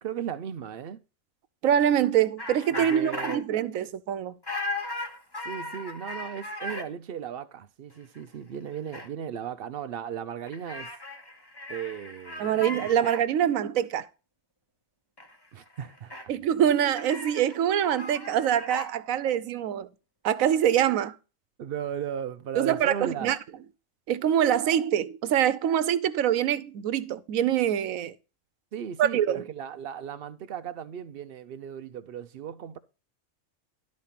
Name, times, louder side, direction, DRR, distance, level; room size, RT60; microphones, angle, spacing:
voice 1, 0.0-1.0 2.7-3.4 5.4-10.9 11.7-12.7 15.5-16.3 21.6-23.4 28.7-32.8, right 8 dB, 55° right, 0.7 m, -36 dB
voice 2, 1.6-4.3 12.4-14.1 16.3-19.9 20.2-21.1 22.6-23.4 24.1-28.1 29.0-29.4, right 10 dB, 85° right, 1.1 m, -24 dB
sound 1, 2.4-3.4 4.4-6.9 8.2-8.3 8.5-9.1 10.5-13.2 15.2-15.4 15.6-16.2 17.0-18.9, left 2 dB, 20° left, 1.1 m, -37 dB
12.0 x 4.2 x 5.7 m
omnidirectional pair, 1.4 m